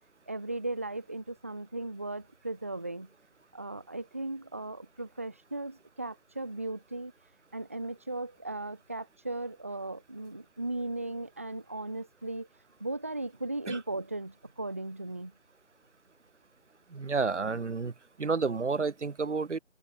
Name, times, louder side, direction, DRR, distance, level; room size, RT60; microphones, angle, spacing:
voice 1, 0.3-3.1 3.5-7.1 7.5-12.5 12.8-15.3, right 2 dB, 10° right, 1.0 m, -37 dB
voice 2, 16.9-17.9 18.2-19.6, right 4 dB, 75° right, 1.4 m, -30 dB
figure-of-eight pair, 170°, 36 cm